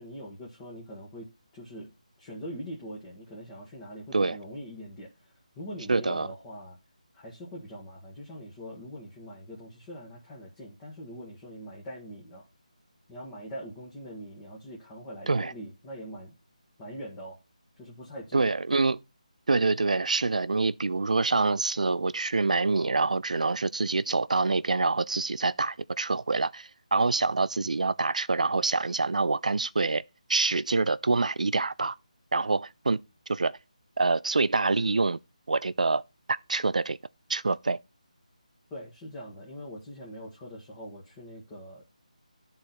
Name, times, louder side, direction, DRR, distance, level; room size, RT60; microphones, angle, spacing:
voice 1, 0.0-6.8 7.1-12.5 13.1-16.3 16.8-17.4 17.8-18.5 38.7-41.9, equal, 15° left, 1.4 m, -43 dB
voice 2, 5.9-6.3 15.3-15.5 18.3-19.0 19.5-30.0 30.3-31.9 32.3-33.0 33.3-33.6 34.0-35.2 35.5-36.0 36.3-37.0 37.3-37.8, right 3 dB, 75° right, 0.4 m, -26 dB
11.0 x 4.0 x 4.3 m
figure-of-eight pair, 160°, 4 cm